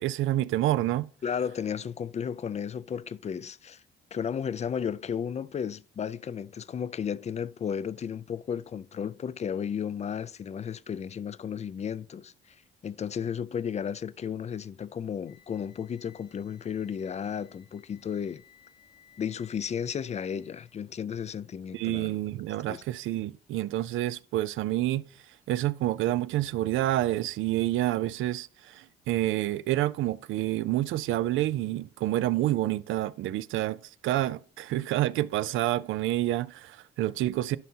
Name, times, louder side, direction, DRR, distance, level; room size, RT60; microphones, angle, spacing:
voice 1, 0.0-1.1 21.7-25.1 25.5-37.6, right 15 dB, 80° right, 0.4 m, -28 dB
voice 2, 1.2-3.8 4.1-12.6 12.8-18.4 19.2-22.1 22.7-22.8, left 7 dB, 35° left, 0.4 m, -34 dB
sound 1, 15.3-20.7, left 8 dB, 80° left, 2.8 m, -60 dB
11.0 x 5.7 x 2.7 m
cardioid pair, 90°, 20 cm